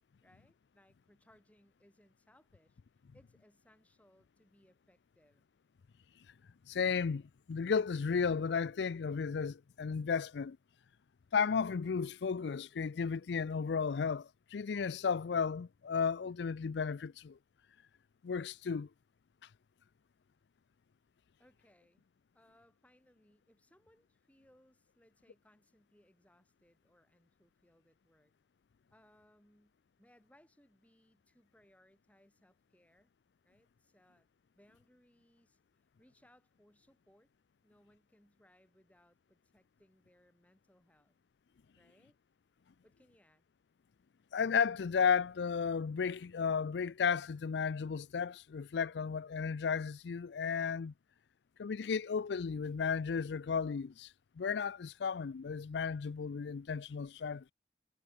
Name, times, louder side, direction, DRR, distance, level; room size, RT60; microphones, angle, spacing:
voice 1, 0.2-5.5 21.4-22.0 22.3-28.3 28.9-33.1 33.4-34.3 34.5-37.3 37.6-41.2 41.7-42.2 42.8-43.5, equal, 10° left, 6.7 m, -68 dB
voice 2, 6.7-7.2 7.5-10.6 11.3-17.4 18.2-18.9 44.3-50.9 51.6-57.5, left 6 dB, 75° left, 0.4 m, -34 dB
head